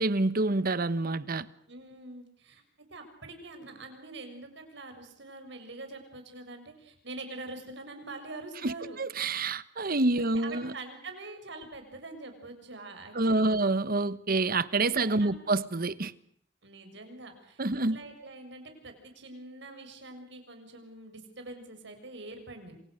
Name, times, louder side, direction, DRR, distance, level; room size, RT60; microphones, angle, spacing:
voice 1, 0.0-1.5 8.6-10.7 13.1-16.1 17.6-18.0, right 2 dB, 50° right, 1.2 m, -27 dB
voice 2, 1.7-2.6 2.9-9.0 9.3-9.4 10.2-13.6 15.1-15.4 16.6-17.6 17.9-22.7, right 2 dB, 65° right, 6.7 m, -44 dB
27.5 x 27.5 x 6.6 m
head